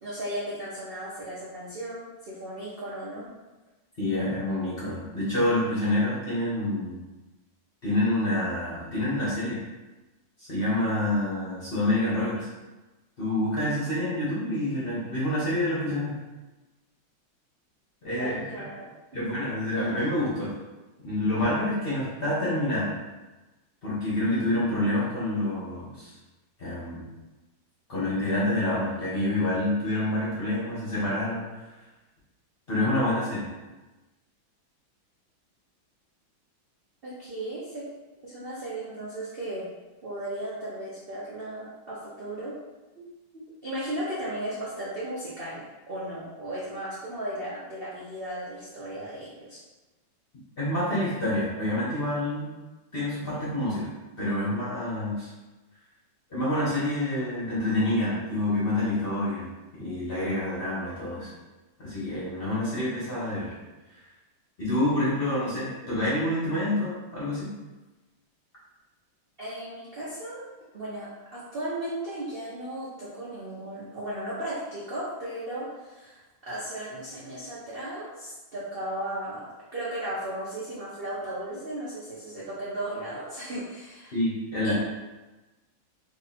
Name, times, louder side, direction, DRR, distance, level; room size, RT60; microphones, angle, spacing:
voice 1, 0.0-3.3 18.2-18.8 37.0-37.9 38.2-39.7 40.0-42.6 42.9-43.0 43.3-49.6 69.4-84.1 84.6-84.7, right 1 dB, 80° right, -8 dB, 0.5 m, -36 dB
voice 2, 4.0-7.0 7.8-9.6 10.4-12.5 13.2-16.1 18.0-18.4 19.1-20.5 21.0-22.9 23.8-26.1 26.6-27.0 27.9-31.5 32.7-33.5 50.6-52.5 52.9-53.9 54.2-55.3 56.3-59.5 59.8-61.3 61.8-63.5 64.6-67.5 84.1-84.7, left 1 dB, 45° left, -8 dB, 0.8 m, -27 dB
3.2 x 2.8 x 4.1 m, 1.1 s
omnidirectional pair, 2.1 m